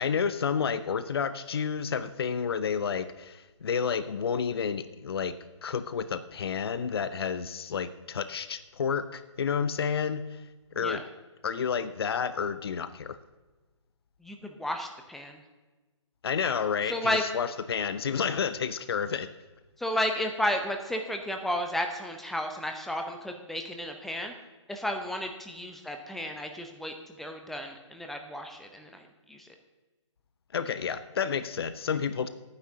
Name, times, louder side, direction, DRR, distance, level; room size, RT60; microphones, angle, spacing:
voice 1, 0.0-5.4 5.6-10.5 10.7-11.1 11.4-13.2 16.2-19.3 19.9-20.1 30.5-32.3, left 6 dB, 50° left, 12 dB, 0.6 m, -30 dB
voice 2, 14.2-15.4 16.9-17.2 19.8-24.3 24.7-29.5, left 1 dB, ahead, 4 dB, 0.7 m, -33 dB
18.0 x 9.7 x 2.8 m, 1.2 s
figure-of-eight pair, 135°, 16 cm